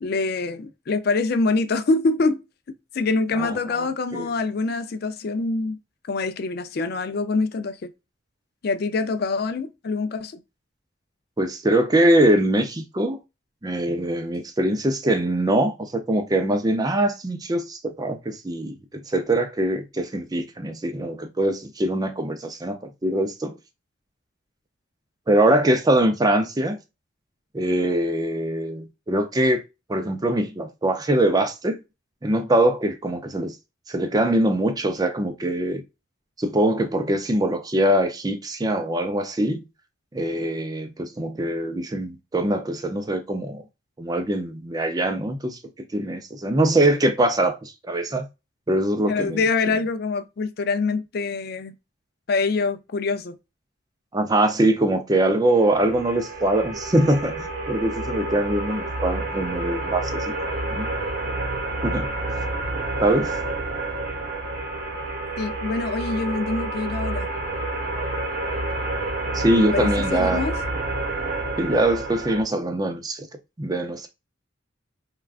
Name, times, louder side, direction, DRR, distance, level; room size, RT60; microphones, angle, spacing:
voice 1, 0.0-2.4 2.9-5.8 6.1-7.9 8.6-10.4 49.1-51.7 52.3-53.4 65.4-67.3 69.7-70.6, left 3 dB, 50° left, 0.4 m, -25 dB
voice 2, 11.4-13.2 13.6-23.5 25.3-26.8 27.5-29.6 29.9-31.8 32.2-33.5 33.9-35.8 36.4-39.6 40.1-43.6 44.0-45.6 45.9-48.3 48.7-49.4 54.1-60.3 60.7-60.9 61.8-62.1 63.0-63.4 69.3-70.4 71.6-73.3 73.6-74.1, right 1 dB, 20° right, 0.4 m, -23 dB
sound 1, 55.6-72.4, right 2 dB, 45° right, 0.9 m, -29 dB
3.4 x 2.3 x 2.4 m
head